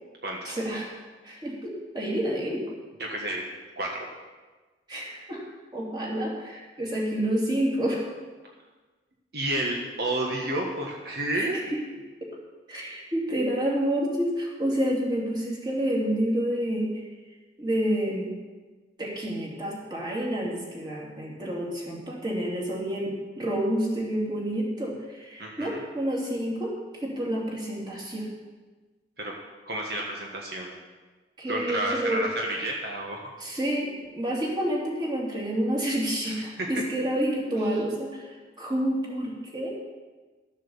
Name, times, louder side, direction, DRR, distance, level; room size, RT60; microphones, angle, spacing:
voice 1, 0.4-0.9 1.2-2.6 4.9-5.4 5.7-8.0 11.3-11.8 12.2-12.3 12.7-17.0 17.6-18.3 19.0-28.3 31.4-32.2 33.4-39.8, right 1 dB, 25° right, -3 dB, 2.9 m, -29 dB
voice 2, 3.0-3.5 3.8-4.1 9.3-11.6 25.4-25.8 29.2-29.3 29.7-30.7 31.5-33.3 36.2-36.7, right 1 dB, 60° right, -1 dB, 1.4 m, -30 dB
13.0 x 7.4 x 7.1 m, 1.3 s
head